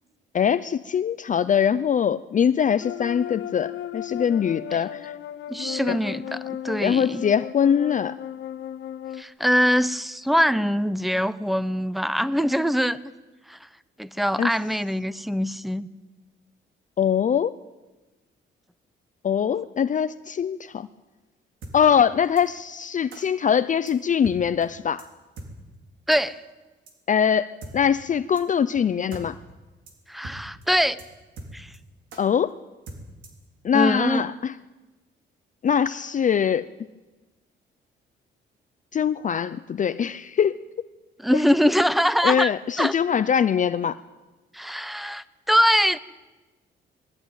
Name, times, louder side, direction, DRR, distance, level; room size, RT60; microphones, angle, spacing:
voice 1, 0.3-5.1 5.9-6.0 6.8-8.1 14.4-14.5 17.0-17.6 19.2-20.9 21.7-25.1 27.1-29.4 32.2-32.5 33.6-34.5 35.6-36.7 38.9-40.6 41.3-41.4 42.2-44.0, left 8 dB, 40° left, 13 dB, 0.6 m, -22 dB
sound 1, 2.8-9.2, left 11 dB, 70° left, 0.9 m, -35 dB
voice 2, 5.5-7.2 9.2-13.0 13.5-13.6 14.0-15.9 26.1-26.4 30.1-31.0 31.5-31.7 33.7-34.2 41.2-42.5 42.8-42.9 44.5-46.0, equal, ahead, 15 dB, 0.8 m, -23 dB
sound 2, 21.6-21.7 22.4-22.5 23.1-23.2 23.9-24.0 24.2-24.4 24.6-24.7 25.0-25.1 25.4-25.5 26.1-26.2 26.9-27.0 27.6-27.7 28.4-28.5 28.7-28.8 29.1-29.2 29.5-29.6 29.9-30.0 30.2-30.4 30.6-30.7 31.0-31.1 31.4-31.8 32.1-32.2 32.9-33.4, right 2 dB, 75° right, 4.0 m, -40 dB
21.0 x 14.0 x 9.2 m, 1.2 s
cardioid pair, 90°, 20 cm